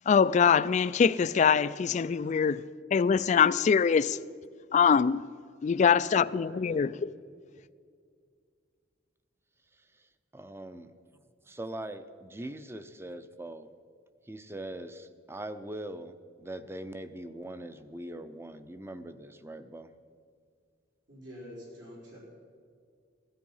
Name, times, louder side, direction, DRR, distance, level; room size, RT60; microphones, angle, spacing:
voice 1, 0.1-2.6 2.9-4.2 4.7-5.2 5.6-7.1, left 6 dB, 40° left, 0.3 m, -23 dB
voice 2, 6.2-7.1 21.1-22.2, equal, 75° right, 4.6 m, -46 dB
voice 3, 10.3-10.9 11.5-13.7 14.3-19.9, right 1 dB, 15° right, 0.6 m, -41 dB
16.0 x 13.5 x 5.5 m
head